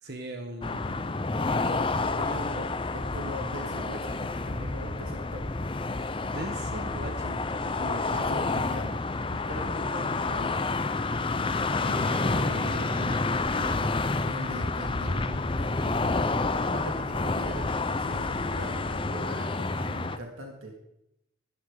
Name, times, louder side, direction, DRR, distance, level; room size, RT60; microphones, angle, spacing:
voice 1, 0.0-2.7 6.2-7.8 11.8-13.2 13.5-13.9, right 2 dB, 50° right, 4 dB, 1.4 m, -39 dB
sound 1, 0.6-20.2, left 3 dB, 25° left, 0.6 m, -29 dB
voice 2, 2.3-2.7 3.1-5.4 7.8-9.0 9.3-10.5 14.3-20.7, right 1 dB, 85° right, 1 dB, 2.5 m, -40 dB
16.0 x 13.0 x 3.9 m, 0.83 s
head